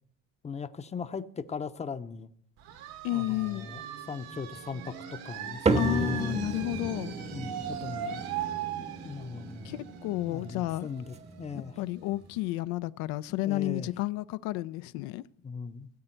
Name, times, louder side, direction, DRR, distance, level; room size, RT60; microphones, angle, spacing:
voice 1, 0.4-2.3 3.1-6.4 7.3-8.2 9.0-9.8 10.3-11.8 13.3-13.9 15.4-15.9, left 5 dB, 20° left, 0.6 m, -38 dB
sound 1, 2.6-12.1, right 9 dB, 80° right, 1.6 m, -40 dB
voice 2, 3.0-3.7 5.7-7.2 9.6-10.9 11.8-15.2, left 16 dB, 80° left, 0.5 m, -31 dB
sound 2, 5.7-12.4, right 4 dB, 20° right, 0.8 m, -34 dB
16.5 x 7.8 x 4.4 m
supercardioid pair, 100°, 36 cm